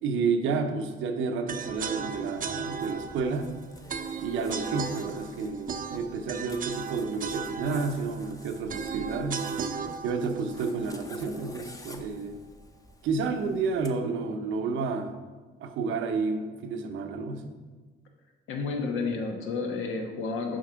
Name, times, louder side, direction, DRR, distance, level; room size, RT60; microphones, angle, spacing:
voice 1, 0.0-3.5 4.2-9.5 10.0-12.4 13.0-15.1 15.6-17.6, right 4 dB, 85° right, 6 dB, 0.8 m, -30 dB
sound 1, 1.5-11.6, right 6 dB, 45° right, 0.5 m, -36 dB
Zipper (clothing), 1.7-13.9, left 2 dB, 15° left, 0.7 m, -50 dB
voice 2, 18.5-20.6, left 4 dB, 85° left, 2 dB, 1.2 m, -31 dB
6.4 x 5.3 x 5.0 m, 1.4 s
cardioid pair, 90°, 20 cm